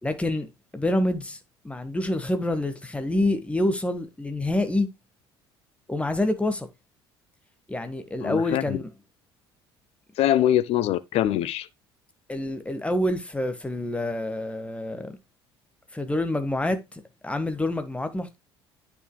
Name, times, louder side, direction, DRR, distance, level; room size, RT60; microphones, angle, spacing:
voice 1, 0.0-0.5 0.7-1.4 1.6-4.9 5.9-6.7 7.7-8.9 12.3-15.2 15.9-18.4, left 1 dB, 10° left, 1.4 m, -27 dB
voice 2, 8.2-8.8 10.2-11.7, left 12 dB, 50° left, 0.7 m, -23 dB
9.7 x 5.6 x 2.2 m
figure-of-eight pair, 55°, 13 cm